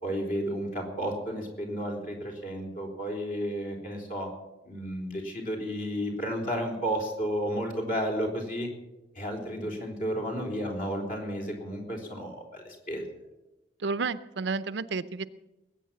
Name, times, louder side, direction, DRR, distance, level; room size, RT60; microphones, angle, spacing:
voice 1, 0.0-4.3 4.6-8.7 9.2-13.0, equal, 45° left, 1 dB, 3.9 m, -32 dB
voice 2, 13.8-15.3, right 4 dB, 65° right, 15 dB, 0.6 m, -31 dB
20.5 x 8.7 x 7.5 m, 0.97 s
head